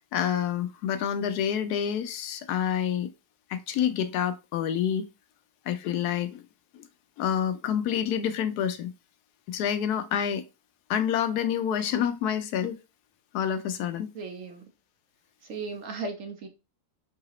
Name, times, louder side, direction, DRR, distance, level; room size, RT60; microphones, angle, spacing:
voice 1, 0.1-3.1 3.5-5.1 5.7-6.4 7.2-8.9 9.5-10.4 10.9-12.8 13.3-14.1, left 9 dB, 80° left, 1.1 m, -28 dB
voice 2, 14.1-14.6 15.4-16.5, right 4 dB, 60° right, 1.1 m, -36 dB
4.8 x 2.8 x 2.9 m
omnidirectional pair, 1.7 m